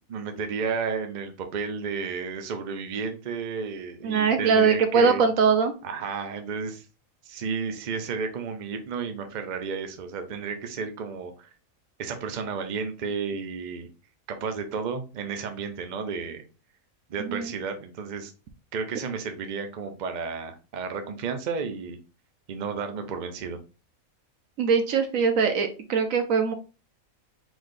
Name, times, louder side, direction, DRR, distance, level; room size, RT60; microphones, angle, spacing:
voice 1, 0.1-5.2 5.8-6.9 7.2-11.5 12.0-13.9 14.3-16.4 17.1-18.3 18.7-22.0 22.5-23.6, right 5 dB, 45° right, 7 dB, 0.6 m, -32 dB
voice 2, 4.0-5.7 17.2-17.5 24.6-26.5, right 5 dB, 70° right, 7 dB, 1.1 m, -22 dB
4.7 x 4.0 x 2.6 m, 0.33 s
omnidirectional pair, 1.5 m